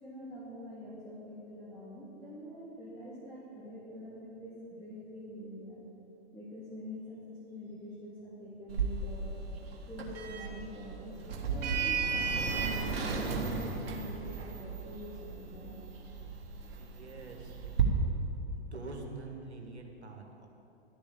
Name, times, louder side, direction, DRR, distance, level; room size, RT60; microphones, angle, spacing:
voice 1, 0.0-5.8 6.3-9.3 9.9-11.2 11.5-15.8, equal, 10° left, -9 dB, 3.1 m, -45 dB
Sliding door, 8.7-17.8, right 5 dB, 60° right, 1.8 m, -35 dB
voice 2, 16.7-17.6 18.5-20.5, right 3 dB, 80° right, 2 dB, 1.7 m, -45 dB
12.5 x 6.9 x 8.5 m, 2.9 s
figure-of-eight pair, 100°, 33 cm